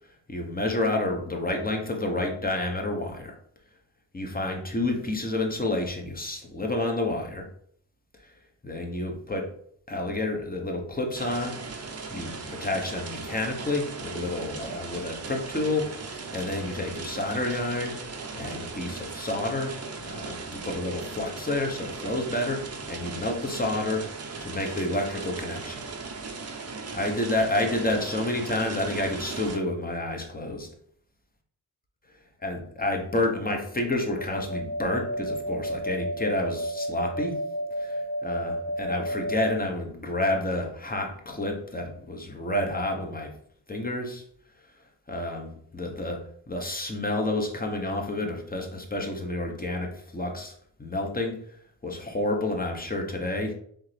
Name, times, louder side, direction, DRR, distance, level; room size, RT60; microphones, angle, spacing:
voice 1, 0.3-3.4 4.1-7.5 8.2-8.3 8.6-9.5 9.9-11.6 11.8-18.0 18.3-24.0 24.4-25.8 26.9-30.7 32.4-37.4 37.8-43.3 43.7-44.2 45.1-46.2 46.5-51.4 51.8-53.5, left 2 dB, 20° left, 2 dB, 1.1 m, -29 dB
sound 1, 11.1-29.6, right 4 dB, 35° right, 0.8 m, -38 dB
sound 2, 34.2-39.6, equal, 45° left, 1.3 m, -32 dB
3.6 x 2.9 x 3.3 m, 0.64 s
supercardioid pair, 40°, 42 cm